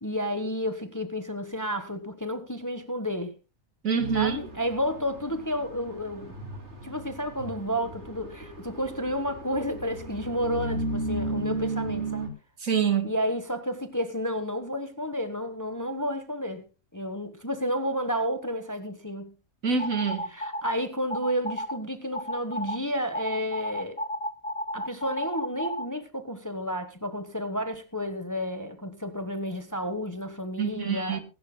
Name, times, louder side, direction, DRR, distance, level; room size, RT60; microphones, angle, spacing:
voice 1, 0.0-3.3 4.1-6.4 6.8-12.3 13.0-16.6 16.9-19.3 20.3-24.0 24.7-31.2, equal, 15° left, 1.1 m, -31 dB
voice 2, 3.8-4.4 12.6-13.1 19.6-20.3 30.6-31.2, right 6 dB, 70° right, 2.2 m, -26 dB
sound 1, 4.0-12.3, right 2 dB, 50° right, 3.2 m, -35 dB
sound 2, 19.8-20.7 21.1-21.8 22.1-22.8 23.1-25.9, left 1 dB, 30° left, 0.7 m, -32 dB
24.5 x 11.5 x 2.2 m
omnidirectional pair, 1.5 m